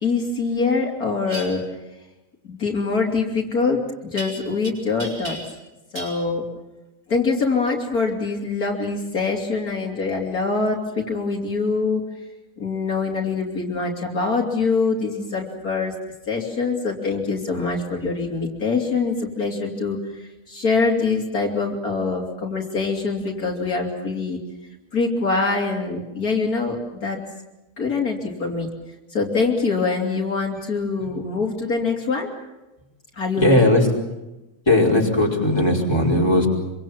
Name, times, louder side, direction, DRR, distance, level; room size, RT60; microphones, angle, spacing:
voice 1, 0.0-1.6 2.4-3.8 4.1-5.4 5.9-6.5 7.1-12.0 12.6-15.9 16.3-24.4 24.9-27.2 27.8-28.7 29.1-32.3 33.1-33.6, left 4 dB, 70° left, 0 dB, 3.6 m, -24 dB
sound 1, 1.3-1.5 4.2-4.7 5.0-5.7 6.0-6.2, equal, 45° right, 6.3 m, -34 dB
voice 2, 33.4-33.9 34.7-36.5, left 1 dB, 15° left, -2 dB, 5.3 m, -18 dB
26.0 x 25.0 x 7.4 m, 1.0 s
omnidirectional pair, 1.6 m